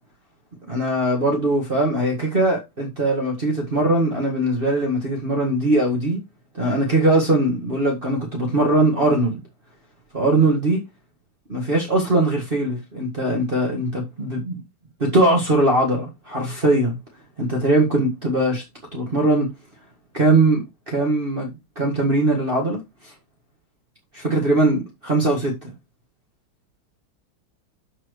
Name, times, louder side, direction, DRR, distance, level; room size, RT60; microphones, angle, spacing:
voice 1, 0.7-6.2 6.5-9.4 10.1-10.8 11.5-14.6 15.0-17.0 17.4-18.6 18.9-19.5 20.1-23.1 24.1-25.7, right 2 dB, 25° right, 1.8 m, -21 dB
13.0 x 4.4 x 3.1 m
omnidirectional pair, 2.3 m